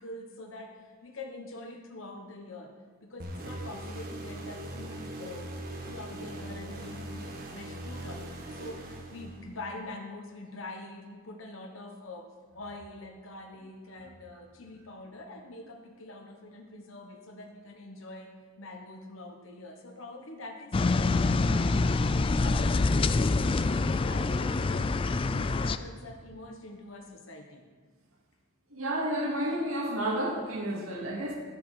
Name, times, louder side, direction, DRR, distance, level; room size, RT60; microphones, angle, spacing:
voice 1, 0.0-2.7 3.0-22.8 23.1-27.6, left 2 dB, 65° left, 3 dB, 1.1 m, -45 dB
sound 1, 3.2-9.7, right 1 dB, 45° right, 1.5 m, -40 dB
sound 2, 20.7-25.8, left 3 dB, 25° left, 0.3 m, -26 dB
voice 2, 28.7-31.3, right 1 dB, 80° right, -1 dB, 2.4 m, -31 dB
14.0 x 7.3 x 4.9 m, 1.5 s
head